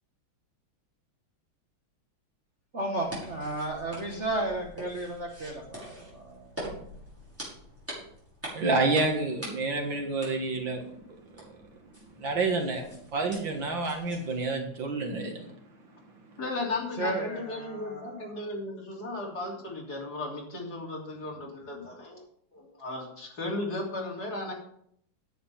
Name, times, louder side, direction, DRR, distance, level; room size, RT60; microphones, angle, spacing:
voice 1, 2.7-6.8 17.0-18.4, right 2 dB, 40° right, 0 dB, 1.5 m, -34 dB
sound 1, 2.9-14.5, equal, 5° right, 5.8 m, -45 dB
voice 2, 8.5-10.9 11.4-11.5 12.2-15.5, right 3 dB, 65° right, 2 dB, 2.4 m, -29 dB
voice 3, 16.4-22.3 22.5-24.5, left 2 dB, 50° left, -2 dB, 3.8 m, -35 dB
10.0 x 8.2 x 5.7 m, 0.66 s
omnidirectional pair, 2.2 m